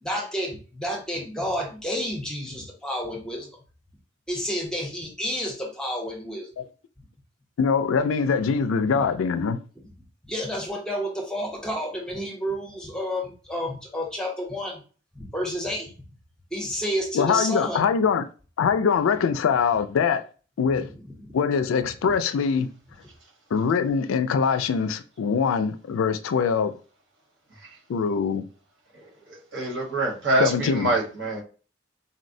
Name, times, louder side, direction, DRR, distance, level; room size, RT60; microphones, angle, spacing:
voice 1, 0.0-3.5 4.3-6.5 8.9-9.1 10.2-14.8 15.1-15.9 16.5-17.9 21.2-21.3, equal, 5° left, 0.6 m, -30 dB
voice 2, 7.6-9.6 17.1-18.3 18.6-20.2 20.6-20.9 21.3-22.7 23.5-26.8 27.9-28.5 30.4-30.9, left 6 dB, 85° left, 0.3 m, -23 dB
voice 3, 29.3-31.4, right 2 dB, 65° right, 1.1 m, -25 dB
4.1 x 2.1 x 2.5 m
head